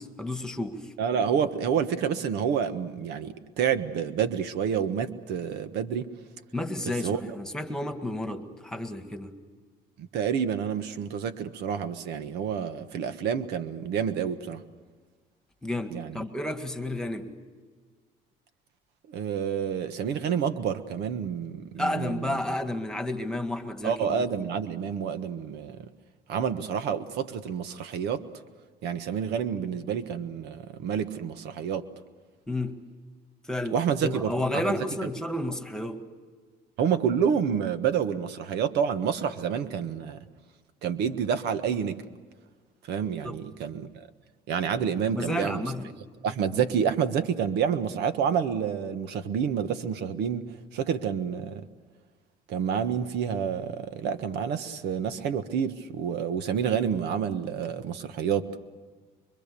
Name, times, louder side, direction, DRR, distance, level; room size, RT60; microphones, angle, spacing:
voice 1, 0.0-0.9 6.5-9.4 15.6-17.3 21.8-24.5 32.5-32.8 33.5-36.1 43.2-43.4 45.1-45.9, left 1 dB, 5° left, 1.9 m, -31 dB
voice 2, 1.0-6.1 7.0-7.2 10.0-14.6 15.9-16.2 19.1-22.4 23.8-25.9 26.3-28.2 28.8-31.9 33.7-34.7 36.8-40.2 40.8-42.0 42.9-44.1 44.5-45.6 46.2-50.4 50.7-51.6 52.5-58.4, right 7 dB, 80° right, 1.4 m, -28 dB
25.5 x 23.5 x 6.9 m
cardioid pair, 110°, 17 cm